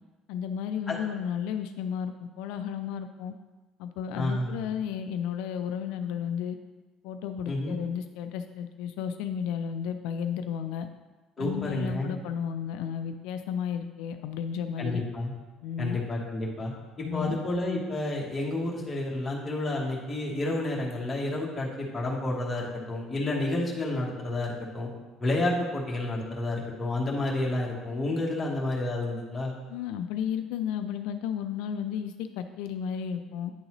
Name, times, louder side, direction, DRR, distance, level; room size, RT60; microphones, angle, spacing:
voice 1, 0.3-3.3 3.8-6.6 7.0-10.9 11.4-15.0 15.6-16.0 17.0-17.4 29.7-33.5, left 8 dB, 85° left, 7 dB, 0.3 m, -33 dB
voice 2, 4.1-4.6 7.5-7.7 11.4-12.1 14.8-15.3 15.8-16.7 17.0-24.9 25.2-29.5, left 2 dB, 15° left, -4 dB, 1.1 m, -30 dB
9.5 x 3.9 x 3.0 m, 1.2 s
cardioid pair, 175°, 0 cm